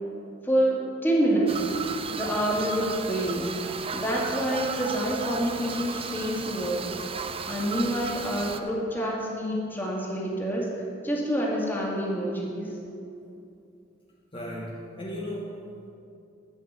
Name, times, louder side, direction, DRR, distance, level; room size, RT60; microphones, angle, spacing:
voice 1, 0.4-1.7 2.1-3.6 3.9-7.0 7.5-10.7 11.0-12.7, right 1 dB, 10° left, -4 dB, 2.1 m, -27 dB
sound 1, 1.5-8.6, right 5 dB, 30° right, 0.5 m, -35 dB
voice 2, 14.3-15.9, equal, 25° left, -4 dB, 1.2 m, -36 dB
12.0 x 5.9 x 8.1 m, 2.7 s
head